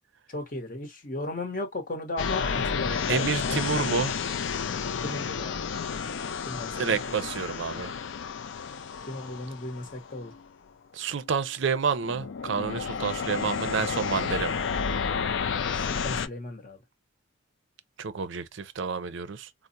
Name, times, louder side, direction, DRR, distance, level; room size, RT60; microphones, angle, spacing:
voice 1, 0.3-3.9 5.0-5.6 6.5-6.8 9.1-10.3 15.9-16.8, left 2 dB, 40° left, 0.8 m, -35 dB
sound 1, 2.2-10.5 11.2-11.4 11.9-16.3, left 6 dB, 65° left, 0.4 m, -31 dB
voice 2, 3.1-4.1 6.8-7.9 10.9-14.6 18.0-19.5, right 5 dB, 65° right, 0.5 m, -29 dB
4.5 x 2.0 x 2.5 m
head